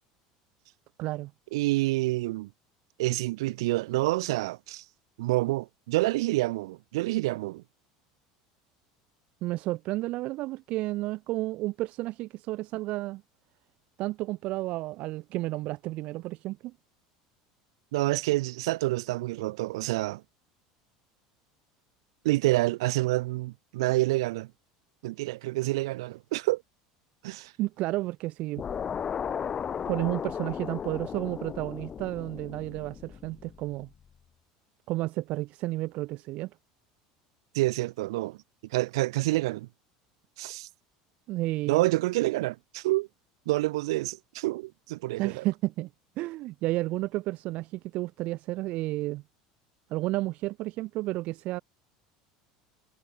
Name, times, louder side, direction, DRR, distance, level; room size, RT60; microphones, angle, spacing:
voice 1, 1.0-1.3 9.4-13.2 14.0-16.7 27.6-28.6 29.9-33.9 34.9-36.5 41.3-41.9 45.2-45.9 46.2-49.2 49.9-51.6, right 18 dB, 60° right, 0.7 m, -32 dB
voice 2, 1.5-2.5 3.0-4.8 5.2-7.6 17.9-20.2 22.2-24.5 25.0-26.6 27.2-27.5 37.5-38.4 38.7-39.7 40.4-40.7 41.7-43.1 43.5-45.4, right 19 dB, 80° right, 1.3 m, -28 dB
sound 1, 28.6-33.8, left 7 dB, 30° left, 1.0 m, -35 dB
hypercardioid pair, 95°, 3 cm